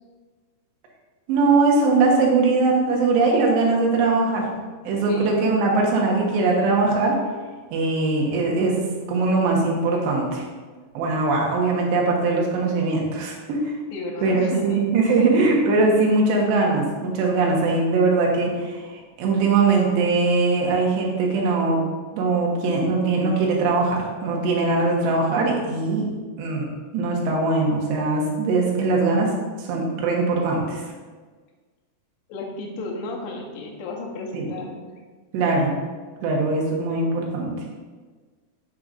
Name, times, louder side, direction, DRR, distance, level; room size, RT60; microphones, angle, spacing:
voice 1, 1.3-4.5 4.8-7.2 7.7-8.8 9.1-10.5 10.9-13.7 14.2-21.8 22.1-26.7 26.9-29.3 29.6-30.8 34.3-34.5 35.3-35.7 36.2-37.5, right 3 dB, 85° right, -2 dB, 3.4 m, -21 dB
voice 2, 4.9-5.4 13.9-14.8 15.1-15.2 32.3-34.8, left 3 dB, 85° left, 0 dB, 3.0 m, -33 dB
7.8 x 7.5 x 2.5 m, 1.4 s
omnidirectional pair, 4.8 m